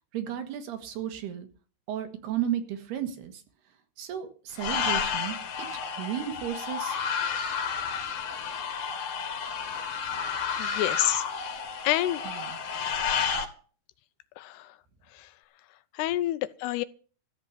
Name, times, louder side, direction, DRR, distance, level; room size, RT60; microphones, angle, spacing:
voice 1, 0.1-1.5 1.9-3.4 4.0-7.0 12.3-12.6, right 10 dB, 75° right, 3.8 m, -34 dB
sound 1, 4.6-13.5, left 6 dB, 60° left, 3.4 m, -31 dB
voice 2, 10.6-11.5 11.8-12.2 14.4-14.7 16.0-16.8, left 15 dB, 80° left, 2.8 m, -28 dB
14.0 x 7.5 x 8.5 m
omnidirectional pair, 4.8 m